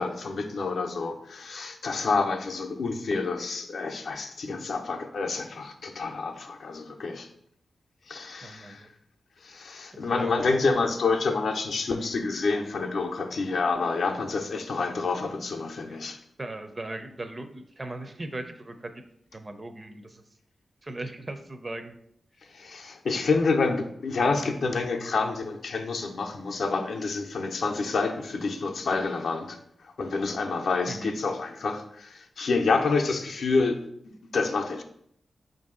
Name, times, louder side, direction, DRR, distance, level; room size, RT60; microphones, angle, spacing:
voice 1, 0.0-7.3 8.1-8.9 9.4-16.2 22.5-29.6 30.0-33.8 34.3-34.8, left 4 dB, 75° left, 4 dB, 0.5 m, -28 dB
voice 2, 8.4-8.9 9.9-10.7 15.9-16.0 16.4-19.0 19.3-20.2 20.8-22.0 24.2-24.7 30.9-31.2, right 2 dB, 30° right, 8 dB, 0.4 m, -39 dB
4.6 x 2.6 x 3.7 m, 0.70 s
cardioid pair, 80°, 0 cm